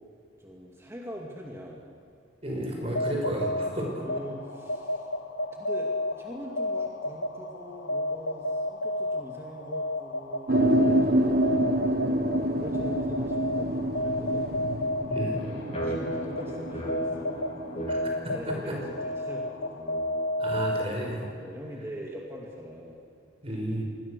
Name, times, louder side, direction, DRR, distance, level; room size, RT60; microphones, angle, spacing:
voice 1, 0.4-1.8 4.0-5.1 5.5-10.6 10.8-11.4 11.9-14.5 15.8-17.4 18.3-20.1 21.4-23.0, equal, 15° right, -1 dB, 2.3 m, -42 dB
voice 2, 2.4-4.0 15.1-15.4 17.9-18.0 18.2-18.4 18.7-18.8 20.4-21.3 23.4-23.8, right 1 dB, 30° right, 1 dB, 5.8 m, -32 dB
sound 1, 2.8-21.3, left 1 dB, 75° left, 1.5 m, -32 dB
sound 2, 10.5-18.0, right 1 dB, 55° right, 1.4 m, -27 dB
sound 3, 15.3-20.8, right 1 dB, 35° left, 4.8 m, -38 dB
26.5 x 21.5 x 6.7 m, 2.5 s
head